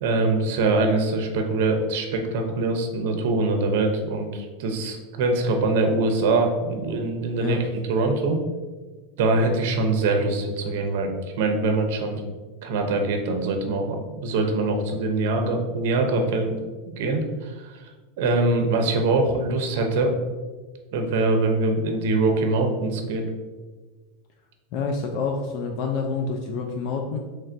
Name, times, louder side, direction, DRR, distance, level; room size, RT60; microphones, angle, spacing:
voice 1, 0.0-7.6 7.9-8.4 9.2-11.1 11.4-12.2 12.6-16.5 16.8-17.7 18.2-20.2 20.9-23.3, right 3 dB, 65° right, 4 dB, 0.6 m, -23 dB
voice 2, 24.7-27.2, left 4 dB, 45° left, 1 dB, 0.4 m, -27 dB
3.1 x 2.5 x 4.3 m, 1.3 s
supercardioid pair, 160°, 0 cm